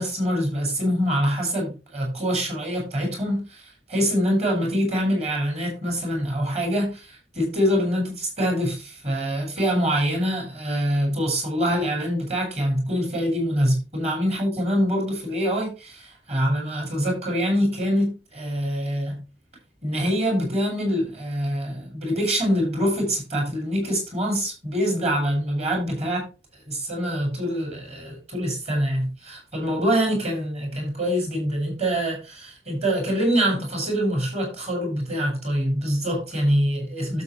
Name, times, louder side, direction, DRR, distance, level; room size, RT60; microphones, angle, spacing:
voice 1, 0.0-19.2 19.8-26.3 26.7-37.2, equal, 35° right, 5.9 m, -25 dB
12.0 x 7.3 x 3.2 m
head